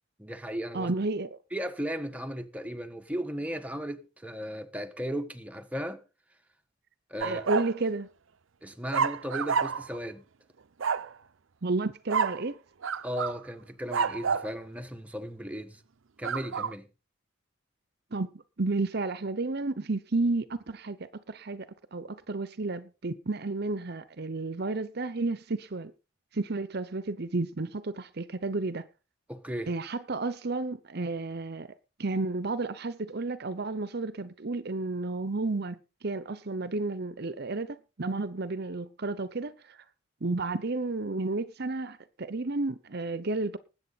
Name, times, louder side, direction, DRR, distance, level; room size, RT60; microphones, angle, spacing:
voice 1, 0.2-0.9 1.5-6.0 7.1-7.5 8.6-10.2 13.0-15.8 16.2-16.9 29.3-29.7, equal, 5° right, 1.3 m, -36 dB
voice 2, 0.7-1.4 7.2-8.1 11.6-12.6 18.1-18.3 18.6-25.9 26.3-28.9 29.7-31.7 32.0-35.8 36.0-39.8 40.2-43.6, right 3 dB, 55° right, 0.8 m, -32 dB
sound 1, 7.2-7.7 8.9-10.0 10.8-11.1 12.1-12.4 12.8-13.4 13.9-14.5 16.2-16.7, right 6 dB, 90° right, 0.6 m, -29 dB
20.0 x 8.6 x 4.1 m
head